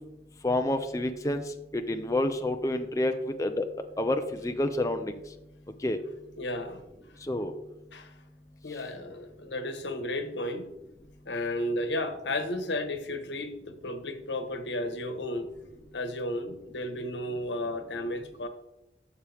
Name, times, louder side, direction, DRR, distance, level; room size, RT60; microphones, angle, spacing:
voice 1, 0.4-1.4 1.7-3.7 4.0-5.1 5.8-6.0 7.3-7.5, left 1 dB, 20° left, 6 dB, 0.5 m, -28 dB
voice 2, 6.4-6.8 7.9-8.1 8.6-10.7 11.3-13.5 13.8-15.5 15.9-18.5, left 1 dB, 90° left, 7 dB, 1.3 m, -33 dB
12.0 x 7.0 x 3.4 m, 0.93 s
head